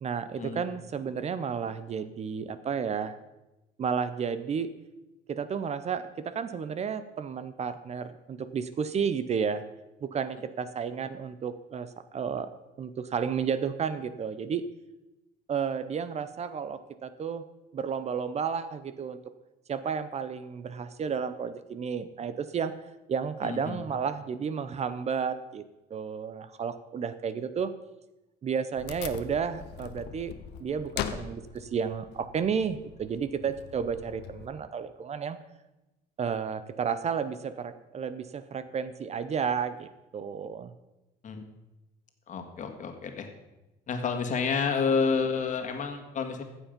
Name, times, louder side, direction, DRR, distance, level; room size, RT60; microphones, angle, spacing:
voice 1, 0.0-3.2 3.8-4.7 5.3-9.6 10.0-12.5 12.8-14.7 15.5-17.4 17.7-19.2 19.7-22.7 23.1-25.6 25.9-27.7 28.4-30.3 30.6-35.4 36.2-40.7, right 6 dB, 40° right, 12 dB, 0.7 m, -32 dB
voice 2, 23.4-23.8 41.2-41.4 42.3-43.3 43.9-46.4, left 5 dB, 50° left, 5 dB, 1.9 m, -29 dB
Wood, 28.8-34.5, left 9 dB, 80° left, 0.9 m, -41 dB
15.0 x 7.3 x 5.2 m, 1.0 s
cardioid pair, 110°, 17 cm